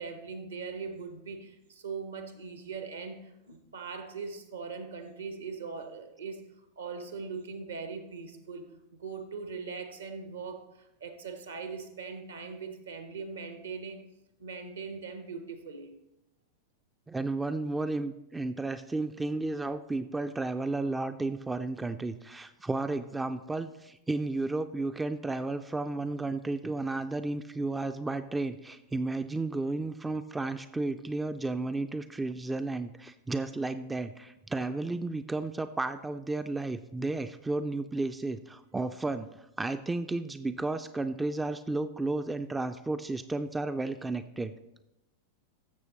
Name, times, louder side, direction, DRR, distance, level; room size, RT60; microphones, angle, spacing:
voice 1, 0.0-6.4 6.8-14.0 14.4-15.9, right 5 dB, 70° right, 7 dB, 1.1 m, -40 dB
voice 2, 17.1-44.5, right 2 dB, 10° right, 10 dB, 0.3 m, -33 dB
14.5 x 6.7 x 3.0 m, 0.89 s
figure-of-eight pair, 90°, 0 cm